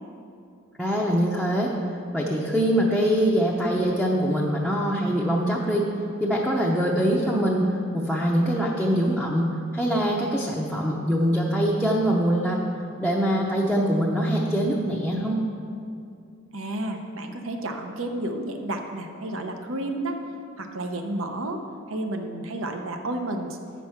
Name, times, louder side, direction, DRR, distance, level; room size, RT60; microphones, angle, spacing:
voice 1, 0.8-1.7 2.1-5.9 6.2-12.6 13.0-15.4, equal, ahead, -4 dB, 0.6 m, -23 dB
voice 2, 16.5-20.2 20.6-21.6 21.9-23.6, right 1 dB, 70° right, 5 dB, 0.8 m, -31 dB
8.8 x 6.3 x 5.7 m, 2.5 s
head